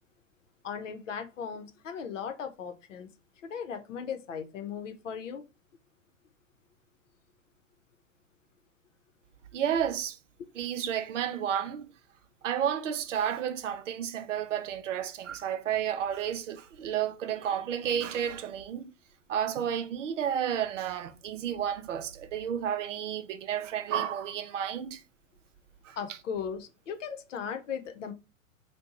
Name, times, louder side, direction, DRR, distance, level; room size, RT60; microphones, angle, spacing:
voice 1, 0.6-3.1 3.4-5.4 10.4-10.5 26.0-28.1, left 7 dB, 65° left, 0.8 m, -37 dB
voice 2, 9.5-10.2 10.6-11.9 12.4-18.9 19.3-25.0 25.8-26.0, right 9 dB, 60° right, 0.6 m, -31 dB
2.7 x 2.2 x 3.7 m
figure-of-eight pair, 110°, 41 cm